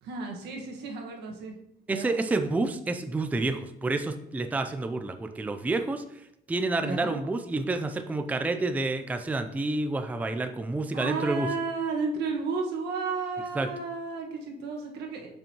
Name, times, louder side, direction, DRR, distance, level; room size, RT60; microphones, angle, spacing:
voice 1, 0.0-1.5 1.9-2.1 6.8-7.1 10.9-15.3, right 4 dB, 80° right, 1 dB, 1.5 m, -32 dB
voice 2, 1.9-11.5 13.6-13.7, right 2 dB, 10° right, 7 dB, 0.4 m, -29 dB
6.9 x 5.4 x 2.9 m, 0.80 s
cardioid pair, 110°, 17 cm